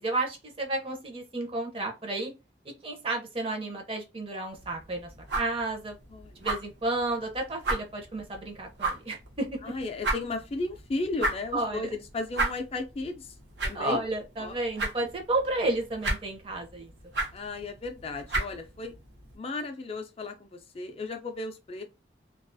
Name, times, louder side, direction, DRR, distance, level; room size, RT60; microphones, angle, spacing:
voice 1, 0.0-2.3 2.8-5.1 5.3-6.0 6.4-9.6 11.5-11.9 13.7-16.9, right 2 dB, 30° right, 0.6 m, -32 dB
sound 1, 4.5-19.4, right 2 dB, 75° right, 0.8 m, -36 dB
voice 2, 9.6-13.3 13.6-14.0 14.4-14.6 17.3-18.9 19.3-21.8, left 3 dB, 35° left, 0.4 m, -35 dB
2.4 x 2.3 x 2.5 m
head